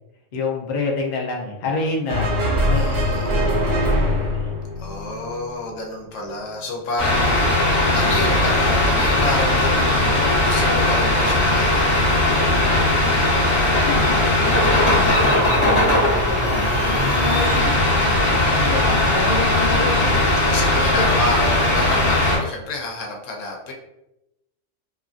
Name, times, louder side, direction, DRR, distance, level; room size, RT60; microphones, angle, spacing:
voice 1, 0.3-2.3 2.6-3.1 3.5-3.9 4.1-4.5 13.7-17.8 18.6-20.2 21.0-21.1, left 3 dB, 55° left, 0 dB, 0.5 m, -28 dB
sound 1, 2.1-5.6, left 1 dB, 60° right, 0.8 m, -22 dB
voice 2, 2.7-3.5 4.8-12.2 19.7-23.7, left 2 dB, 80° left, 0 dB, 1.0 m, -29 dB
sound 2, 7.0-22.4, left 1 dB, 25° left, 1.0 m, -18 dB
3.0 x 2.5 x 2.3 m, 0.90 s
omnidirectional pair, 1.3 m